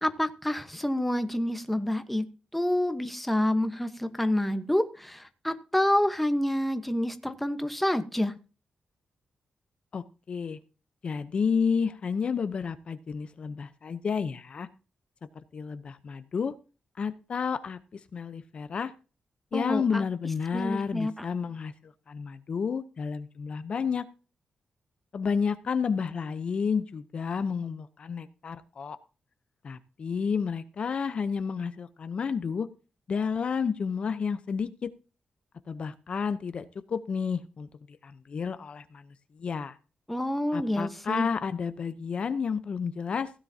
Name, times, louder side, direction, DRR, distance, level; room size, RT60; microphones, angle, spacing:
voice 1, 0.0-2.2 2.5-8.3 19.5-19.8 20.5-21.1 40.1-41.3, left 1 dB, 5° left, 1.1 m, -28 dB
voice 2, 9.9-10.6 11.0-14.7 15.3-16.5 17.0-18.9 19.5-24.0 25.1-29.0 29.6-32.7 33.1-34.9 35.7-39.8 40.5-43.3, left 6 dB, 50° left, 0.7 m, -31 dB
16.0 x 9.8 x 2.8 m
wide cardioid pair, 125°, 2 cm